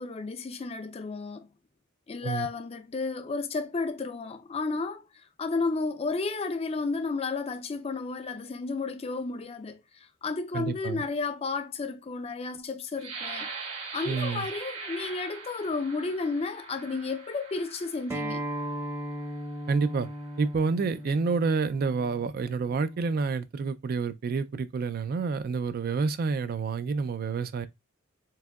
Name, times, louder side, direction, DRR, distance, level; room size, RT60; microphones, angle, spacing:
voice 1, 0.0-1.5 2.1-5.0 5.4-9.8 10.2-13.5 13.9-18.4, left 3 dB, 30° left, 0.4 m, -32 dB
voice 2, 10.5-11.0 14.1-14.5 19.7-20.1 20.4-27.7, right 4 dB, 45° right, 0.3 m, -28 dB
sound 1, 13.0-18.6 19.3-19.4 19.9-20.4, right 4 dB, 70° right, 1.5 m, -41 dB
Acoustic guitar, 18.1-23.3, right 1 dB, 10° right, 0.6 m, -37 dB
4.7 x 3.6 x 2.3 m
head